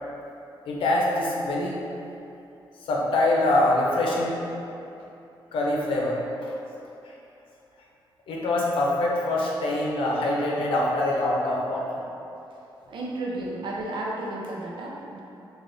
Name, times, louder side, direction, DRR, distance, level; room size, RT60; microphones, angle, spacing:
voice 1, 0.7-1.8 2.8-4.4 5.5-6.5 7.0-7.1 8.3-12.0, left 1 dB, 80° left, -3 dB, 0.6 m, -24 dB
voice 2, 12.9-15.2, right 2 dB, 70° right, -3 dB, 0.6 m, -32 dB
3.3 x 2.5 x 3.8 m, 2.8 s
cardioid pair, 95°, 9 cm